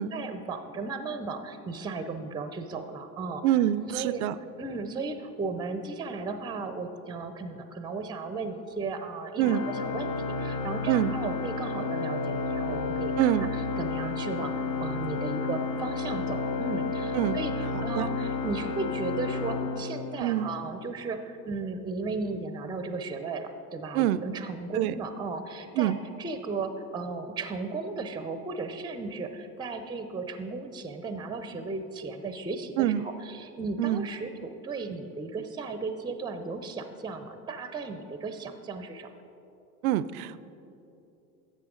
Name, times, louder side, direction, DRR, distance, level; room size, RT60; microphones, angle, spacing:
voice 1, 0.0-3.4 3.9-4.2 4.6-14.5 14.8-25.9 26.2-39.1, right 3 dB, 10° right, 9 dB, 0.5 m, -35 dB
voice 2, 3.4-4.3 9.4-9.7 10.9-11.1 13.2-13.5 17.1-17.4 17.7-18.1 20.2-20.5 23.9-24.2 24.7-24.9 25.8-26.0 32.8-33.1 33.8-34.1 39.8-40.4, right 12 dB, 70° right, 16 dB, 0.5 m, -25 dB
Organ, 9.4-20.6, left 4 dB, 35° left, 0.8 m, -31 dB
11.5 x 7.5 x 3.8 m, 2.9 s
hypercardioid pair, 80°, 45 cm